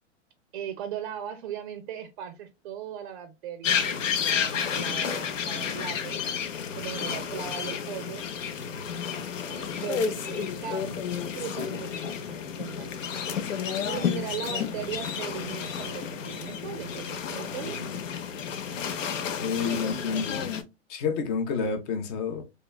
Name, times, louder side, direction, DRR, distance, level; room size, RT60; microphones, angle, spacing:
voice 1, 0.5-6.2 6.8-8.2 9.5-13.1 13.9-17.9, right 9 dB, 45° right, 0.4 m, -38 dB
sound 1, 3.6-20.6, left 7 dB, 85° left, 0.6 m, -31 dB
voice 2, 19.4-20.5 20.9-22.4, left 5 dB, 30° left, 0.5 m, -29 dB
3.1 x 2.2 x 2.2 m
hypercardioid pair, 135°, 38 cm